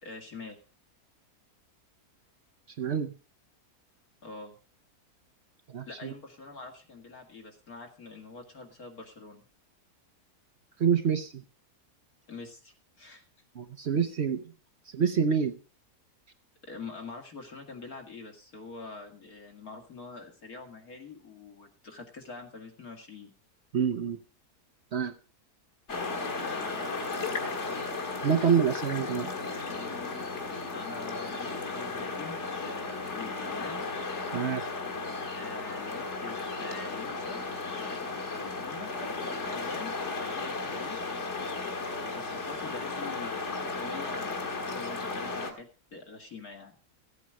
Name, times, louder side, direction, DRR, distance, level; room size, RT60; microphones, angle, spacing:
voice 1, 0.0-0.6 4.2-4.6 5.9-9.5 12.3-13.2 16.6-23.3 26.4-27.8 30.5-33.8 35.3-37.4 37.7-41.1 42.0-46.8, left 4 dB, 70° left, 2 dB, 2.7 m, -45 dB
voice 2, 2.8-3.1 5.7-6.1 10.8-11.4 13.5-14.4 14.9-15.5 23.7-24.2 24.9-25.1 28.2-29.3 34.3-34.6, right 7 dB, 50° right, 6 dB, 1.0 m, -27 dB
sound 1, 25.9-45.5, left 3 dB, 50° left, 2.0 m, -35 dB
15.0 x 8.5 x 4.8 m, 0.36 s
omnidirectional pair, 1.6 m